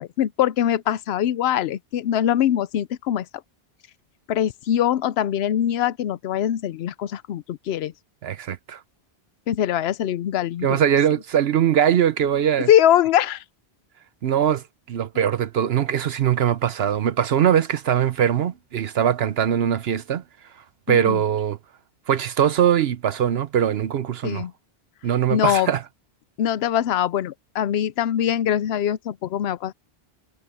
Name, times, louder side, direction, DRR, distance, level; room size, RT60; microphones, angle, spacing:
voice 1, 0.0-3.3 4.3-7.9 9.5-10.8 12.7-13.4 20.9-21.2 24.2-24.5 25.3-25.7 26.4-29.7, left 10 dB, 80° left, 0.8 m, -22 dB
voice 2, 8.2-8.8 10.6-12.7 14.2-20.2 20.9-21.6 22.1-24.5 25.0-25.8, right 9 dB, 75° right, 0.9 m, -21 dB
omnidirectional pair, 1.1 m